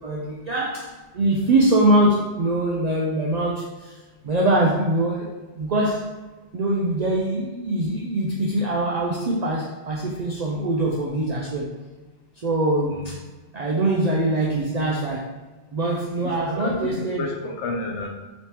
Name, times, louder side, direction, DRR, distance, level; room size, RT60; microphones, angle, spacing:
voice 1, 0.0-4.0 4.2-6.1 6.5-11.7 12.4-13.2 13.5-15.3 15.7-17.3, right 1 dB, 65° right, -4 dB, 0.4 m, -23 dB
voice 2, 16.2-18.1, left 2 dB, 80° left, 1 dB, 0.9 m, -31 dB
3.2 x 3.1 x 2.9 m, 1.2 s
omnidirectional pair, 1.2 m